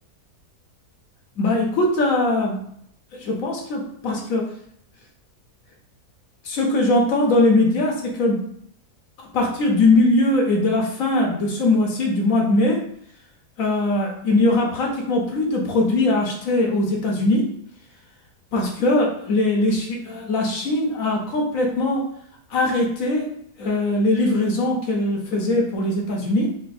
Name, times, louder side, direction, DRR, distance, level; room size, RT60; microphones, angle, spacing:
voice 1, 1.4-2.6 3.1-4.5 6.4-8.5 9.2-12.9 13.6-17.5 18.5-22.1 22.5-23.3 23.6-26.5, left 2 dB, 65° left, 0 dB, 1.0 m, -21 dB
4.2 x 2.1 x 3.9 m, 0.70 s
omnidirectional pair, 1.7 m